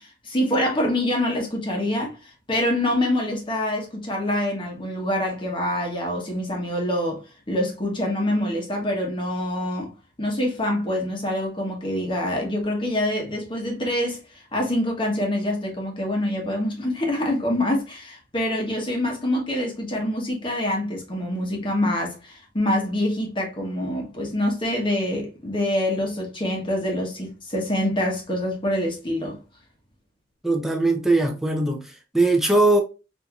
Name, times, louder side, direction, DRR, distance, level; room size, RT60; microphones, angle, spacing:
voice 1, 0.0-7.2 7.5-9.9 10.2-14.2 14.5-29.4, left 1 dB, 25° left, 1.0 m, -25 dB
voice 2, 30.4-32.8, right 2 dB, ahead, 0.6 m, -20 dB
4.3 x 2.7 x 2.3 m
head